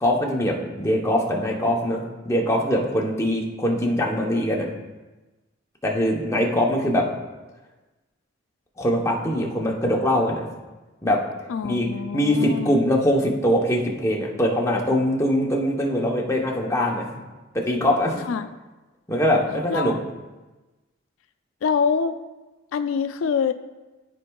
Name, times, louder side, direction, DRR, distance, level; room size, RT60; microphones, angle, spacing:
voice 1, 0.0-4.7 5.8-7.1 8.8-10.5 11.0-11.2 11.6-11.9 12.1-17.2 17.5-18.3 19.1-20.0, equal, 15° left, -1 dB, 0.9 m, -22 dB
voice 2, 11.5-12.8 18.3-18.5 19.7-20.0 21.6-22.2 22.7-23.5, left 6 dB, 85° left, 9 dB, 0.3 m, -25 dB
13.0 x 4.6 x 2.3 m, 1.2 s
head